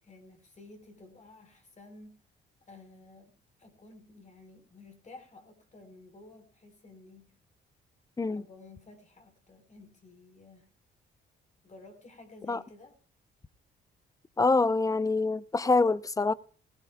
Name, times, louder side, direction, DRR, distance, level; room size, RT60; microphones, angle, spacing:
voice 1, 0.0-2.2 2.6-3.3 3.6-7.4 8.3-10.7 11.6-13.0, left 2 dB, 35° left, 4.2 m, -53 dB
voice 2, 14.4-16.3, left 3 dB, 15° left, 0.6 m, -25 dB
19.5 x 16.5 x 2.3 m
cardioid pair, 90°, 20 cm